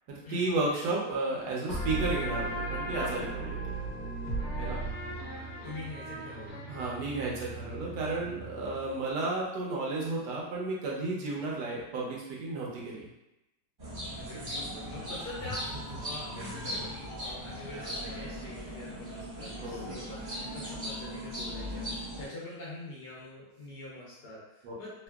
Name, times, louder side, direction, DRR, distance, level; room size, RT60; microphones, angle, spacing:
voice 1, 0.1-3.6 4.6-4.8 6.7-13.1 19.6-19.9 24.6-24.7, right 3 dB, 65° right, -3 dB, 1.1 m, -33 dB
sound 1, 1.7-9.0, right 2 dB, 40° left, 1.0 m, -36 dB
voice 2, 4.5-6.6 11.3-11.4 14.1-25.0, left 2 dB, 65° left, -6 dB, 1.0 m, -45 dB
sound 2, 13.8-22.3, equal, 35° right, 0.9 m, -38 dB
3.6 x 2.2 x 2.2 m, 0.92 s
omnidirectional pair, 2.4 m